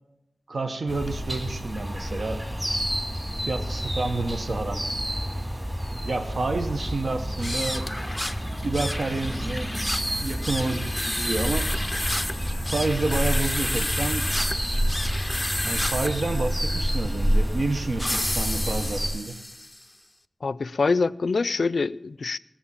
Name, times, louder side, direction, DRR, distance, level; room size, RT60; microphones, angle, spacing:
voice 1, 0.5-2.4 3.4-4.8 6.0-7.9 8.6-9.7 10.2-11.7 12.6-14.2 15.6-19.3, right 3 dB, 75° right, 1.0 m, -29 dB
sound 1, 0.9-19.1, equal, 20° right, 3.4 m, -29 dB
sound 2, 7.3-19.8, left 1 dB, 10° left, 0.5 m, -31 dB
voice 2, 20.4-22.4, left 4 dB, 80° left, 0.4 m, -25 dB
18.5 x 7.1 x 7.2 m
wide cardioid pair, 90°, 0 cm